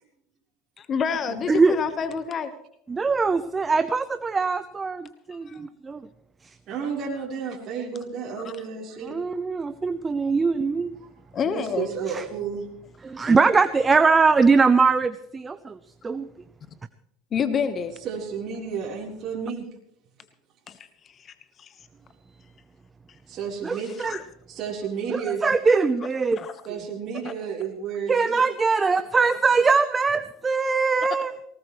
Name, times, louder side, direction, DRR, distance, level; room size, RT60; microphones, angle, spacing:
voice 1, 0.9-2.5 5.5-5.6 11.3-11.9 17.3-18.0 20.7-20.8 21.2-21.3 21.6-21.7 24.1-24.2 26.4-26.5 27.2-27.3, left 6 dB, 40° left, 11 dB, 1.3 m, -27 dB
voice 2, 2.9-6.0 9.0-11.0 12.1-12.2 13.0-15.8 16.0-16.3 23.6-24.2 25.1-26.4 28.1-31.3, right 4 dB, 20° right, 12 dB, 0.7 m, -22 dB
voice 3, 6.7-9.2 11.0-12.7 18.0-19.7 23.3-23.9 24.5-25.4 26.7-28.4, right 6 dB, 45° right, -3 dB, 4.0 m, -32 dB
19.0 x 19.0 x 3.2 m, 0.73 s
hypercardioid pair, 85°, 0 cm